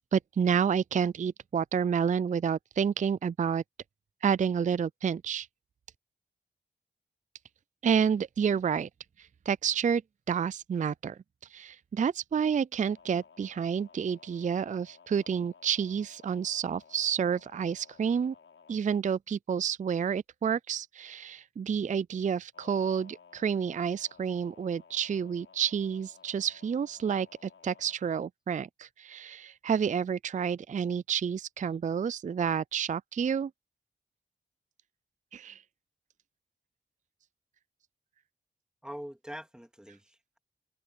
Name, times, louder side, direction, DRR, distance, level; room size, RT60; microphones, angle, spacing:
voice 1, 0.1-3.6 4.2-5.5 7.8-8.9 9.5-10.0 10.3-11.2 11.5-18.3 18.7-33.5 35.3-35.6, right 7 dB, 40° right, 0.4 m, -29 dB
sound 1, 12.8-18.8 22.5-28.0, left 6 dB, 80° left, 5.1 m, -57 dB
voice 2, 38.8-40.4, equal, 5° right, 2.8 m, -44 dB
cardioid pair, 45°, 21 cm